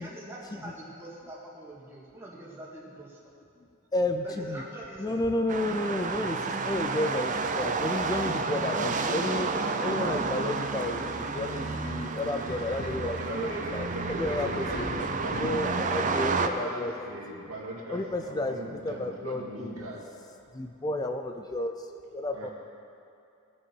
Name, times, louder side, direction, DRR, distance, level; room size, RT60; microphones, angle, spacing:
voice 1, 0.0-3.2 4.2-5.2, right 1 dB, 10° right, -6 dB, 2.1 m, -44 dB
voice 2, 3.9-4.6 5.0-9.5 9.8-14.9 15.3-16.9 17.9-18.6 18.8-19.9 20.5-21.9 22.1-22.5, left 1 dB, 20° left, 5 dB, 0.4 m, -32 dB
sound 1, 5.5-16.5, right 4 dB, 35° right, 0.5 m, -31 dB
Subway metro underground, 8.5-16.1, left 2 dB, 45° left, 0.8 m, -42 dB
voice 3, 13.0-16.1 16.5-20.0 21.9-22.1 22.3-22.5, right 1 dB, 80° right, -3 dB, 2.2 m, -39 dB
18.5 x 6.5 x 4.6 m, 2.6 s
head